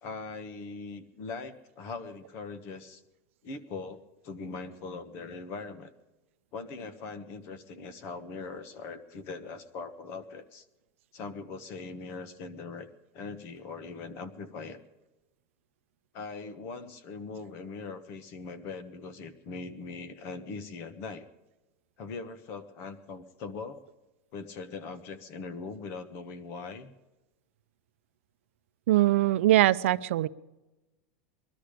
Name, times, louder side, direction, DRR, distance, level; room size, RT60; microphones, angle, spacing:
voice 1, 0.0-3.0 3.4-5.9 6.5-10.6 11.1-12.9 13.1-14.8 16.1-21.3 22.0-23.8 24.3-26.9, left 4 dB, 35° left, 12 dB, 1.2 m, -41 dB
voice 2, 28.9-30.3, right 15 dB, 75° right, 14 dB, 0.6 m, -22 dB
20.5 x 12.5 x 5.1 m, 1.1 s
supercardioid pair, 170°, 7 cm